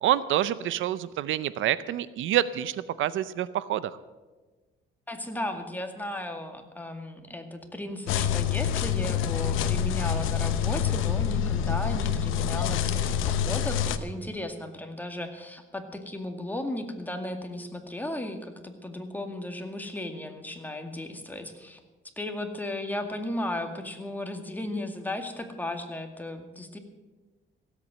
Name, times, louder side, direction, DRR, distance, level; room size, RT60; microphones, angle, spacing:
voice 1, 0.0-4.0, right 12 dB, 80° right, 16 dB, 0.6 m, -27 dB
voice 2, 5.1-21.8 22.2-26.8, left 1 dB, 10° left, 5 dB, 2.1 m, -35 dB
sound 1, 8.1-14.0, left 8 dB, 85° left, 0.9 m, -26 dB
16.5 x 8.4 x 7.7 m, 1.3 s
cardioid pair, 90°, 20 cm